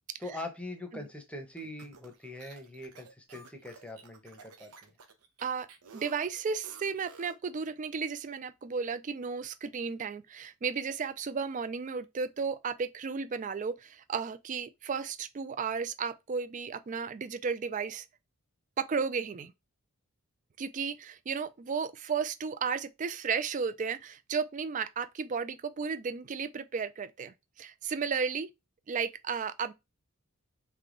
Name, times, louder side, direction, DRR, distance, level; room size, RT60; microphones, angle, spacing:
voice 1, 0.2-4.9, left 1 dB, 5° left, 0.8 m, -42 dB
sound 1, 1.6-7.5, right 4 dB, 80° right, 0.8 m, -53 dB
voice 2, 5.9-18.1 18.8-19.5 20.6-28.5 28.9-29.7, right 5 dB, 35° right, 0.3 m, -34 dB
3.5 x 3.3 x 3.8 m
head